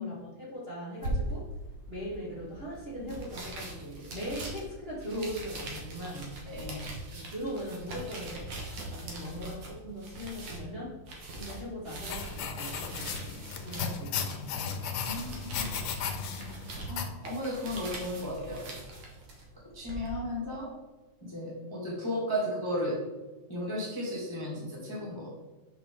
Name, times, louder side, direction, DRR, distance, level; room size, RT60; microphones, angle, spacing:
voice 1, 0.0-1.5 1.9-6.5 7.1-11.0 11.3-14.8, equal, 75° right, -7 dB, 0.5 m, -40 dB
sound 1, 1.0-20.1, right 1 dB, 55° right, 1.9 m, -41 dB
voice 2, 6.5-6.8 15.0-15.7 16.0-16.3 16.9-18.6 19.7-20.7 21.2-23.0 23.5-25.3, left 1 dB, 10° left, -5 dB, 1.1 m, -35 dB
sound 2, 12.1-17.1, left 6 dB, 75° left, 1.9 m, -35 dB
6.8 x 5.9 x 3.7 m, 1.2 s
omnidirectional pair, 3.3 m